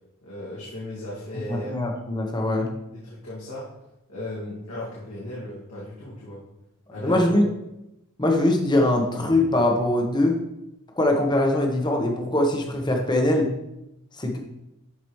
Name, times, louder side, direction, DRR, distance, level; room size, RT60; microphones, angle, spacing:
voice 1, 0.2-1.7 2.9-3.8 4.1-6.4 6.9-7.3, left 1 dB, 80° left, -8 dB, 2.2 m, -36 dB
voice 2, 1.5-2.7 7.0-7.4 8.2-10.4 11.0-13.5 14.2-14.4, left 1 dB, 20° left, 2 dB, 1.0 m, -22 dB
11.5 x 5.0 x 3.1 m, 0.90 s
head